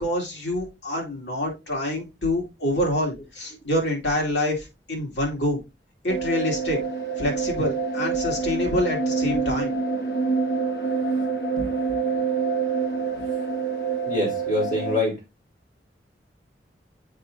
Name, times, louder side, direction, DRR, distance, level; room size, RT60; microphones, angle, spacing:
voice 1, 0.0-5.6 6.0-6.8 7.2-9.7, left 1 dB, 85° left, 2.6 m, -26 dB
sound 1, 6.1-15.0, right 4 dB, 65° left, 1.5 m, -26 dB
voice 2, 11.6-12.1 13.2-13.4 14.1-15.2, left 2 dB, 50° left, 3.6 m, -27 dB
7.6 x 5.0 x 2.7 m
head